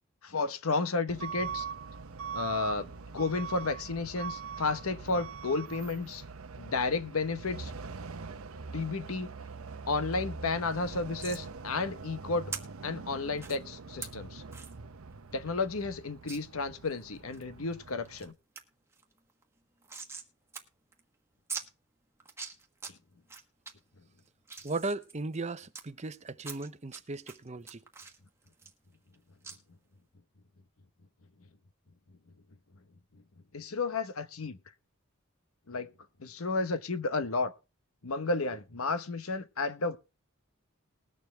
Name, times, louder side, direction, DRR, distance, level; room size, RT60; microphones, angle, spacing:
voice 1, 0.2-1.7 2.3-6.2 6.6-7.7 8.7-9.3 9.9-12.5 12.8-14.4 15.3-18.3 33.5-34.6 35.7-35.9 36.2-37.5 38.0-40.0, left 3 dB, 85° left, 1.0 m, -32 dB
Truck / Alarm, 1.1-18.3, right 5 dB, 85° right, 0.8 m, -43 dB
sound 1, 11.2-11.4 12.5-12.6 13.4-13.6 14.0-14.1 14.5-14.7 15.1-15.2 15.5-15.6 16.3-16.4 16.9-17.4 17.9-18.3 18.6-18.7 18.9-20.3 20.5-20.6 20.9-21.0 21.5-21.7 22.2-22.9 23.3-23.7 24.2-25.8 26.4-27.0 27.3-29.2 29.4-29.6, right 5 dB, 10° right, 1.3 m, -42 dB
voice 2, 24.6-27.8, right 3 dB, 30° right, 0.7 m, -36 dB
20.5 x 6.9 x 3.3 m
head